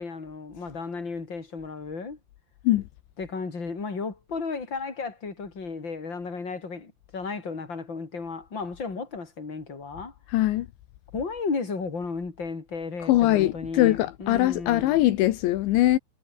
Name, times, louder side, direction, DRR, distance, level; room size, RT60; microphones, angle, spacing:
voice 1, 0.0-2.2 3.2-10.1 11.1-15.0, left 4 dB, 25° left, 5.0 m, -34 dB
voice 2, 10.3-10.7 13.0-16.0, left 15 dB, 80° left, 3.4 m, -22 dB
omnidirectional pair, 5.3 m